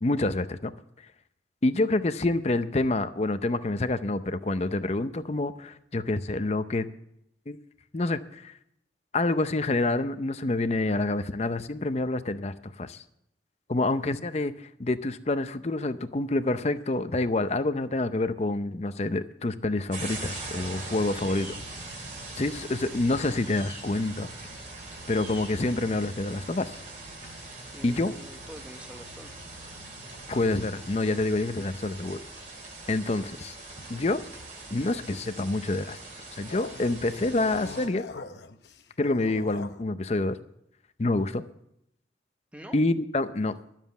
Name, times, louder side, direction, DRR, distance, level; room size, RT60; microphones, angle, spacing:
voice 1, 0.0-0.7 1.6-6.9 7.5-7.6 7.9-8.5 9.1-13.0 13.7-21.5 22.4-24.3 25.1-26.8 27.8-28.1 30.3-32.2 32.9-33.6 33.9-34.2 34.7-36.0 36.3-38.0 39.0-40.4 41.0-41.4 42.7-43.5, left 2 dB, 35° left, 11 dB, 0.6 m, -27 dB
sound 1, 19.9-37.9, right 2 dB, 45° right, 2.4 m, -42 dB
voice 2, 21.1-21.4 27.7-29.3 42.5-42.8, equal, 5° right, 6 dB, 0.8 m, -45 dB
sound 2, 36.5-39.8, left 3 dB, 70° left, 0.8 m, -42 dB
12.5 x 7.4 x 8.0 m, 0.77 s
head